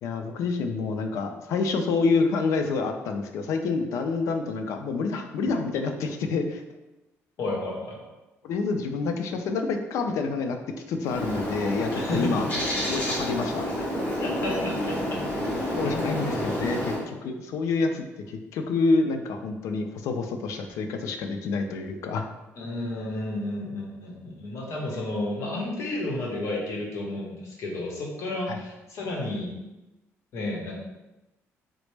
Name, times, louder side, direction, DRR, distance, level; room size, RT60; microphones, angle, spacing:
voice 1, 0.0-6.6 8.4-10.6 10.9-12.5 12.9-13.9 15.8-22.3 28.5-28.6, left 4 dB, 80° left, 6 dB, 0.4 m, -28 dB
voice 2, 7.4-8.1 11.9-12.5 14.2-15.2 22.6-29.6 30.3-30.8, left 2 dB, 65° left, -1 dB, 0.9 m, -32 dB
Bird, 11.0-17.0, equal, 30° left, 1.3 m, -29 dB
4.1 x 2.0 x 3.2 m, 1.0 s
cardioid pair, 125°, 5 cm